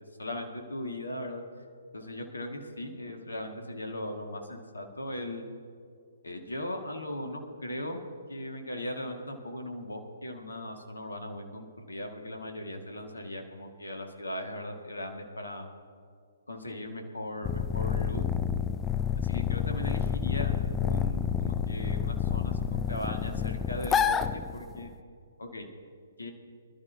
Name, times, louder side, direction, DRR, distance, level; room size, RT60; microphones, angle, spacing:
voice 1, 0.2-1.4 1.9-5.4 6.2-8.0 8.3-15.7 16.5-18.2 19.2-20.5 20.8-24.9 25.4-25.7 26.2-26.3, left 1 dB, 75° left, 3 dB, 2.0 m, -38 dB
sound 1, 17.4-24.9, left 8 dB, 15° left, 0.5 m, -29 dB
26.0 x 12.5 x 2.9 m, 2.3 s
figure-of-eight pair, 125°, 0 cm